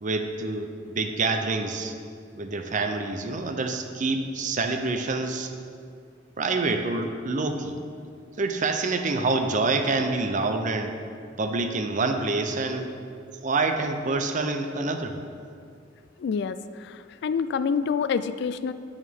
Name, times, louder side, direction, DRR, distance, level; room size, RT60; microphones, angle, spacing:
voice 1, 0.0-1.9 2.3-5.5 6.4-7.8 8.4-11.0 11.4-12.9 13.4-15.2, right 3 dB, 40° right, 6 dB, 0.6 m, -27 dB
voice 2, 16.2-18.7, left 6 dB, 60° left, 13 dB, 0.3 m, -27 dB
9.1 x 6.4 x 3.6 m, 2.3 s
head